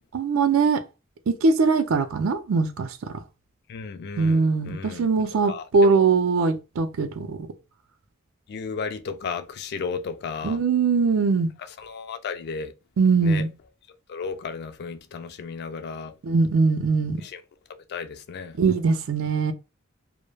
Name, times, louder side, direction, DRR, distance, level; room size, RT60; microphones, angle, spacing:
voice 1, 0.1-0.8 1.3-2.9 4.2-7.4 10.4-11.5 13.0-13.5 16.2-17.2 18.6-19.5, right 4 dB, 75° right, 0.4 m, -21 dB
voice 2, 3.7-6.1 8.5-10.6 11.8-12.7 13.2-13.4 14.1-16.1 17.2-17.4 17.9-18.5, left 5 dB, 50° left, 0.3 m, -34 dB
2.2 x 2.1 x 3.1 m
head